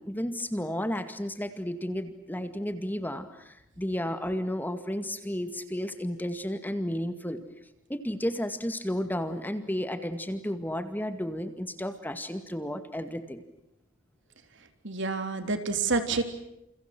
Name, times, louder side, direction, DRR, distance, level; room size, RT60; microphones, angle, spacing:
voice 1, 0.0-7.4 7.9-13.4, equal, 10° left, 8 dB, 2.1 m, -32 dB
voice 2, 14.8-16.2, right 4 dB, 60° right, 7 dB, 3.7 m, -28 dB
30.0 x 29.5 x 6.2 m, 0.82 s
head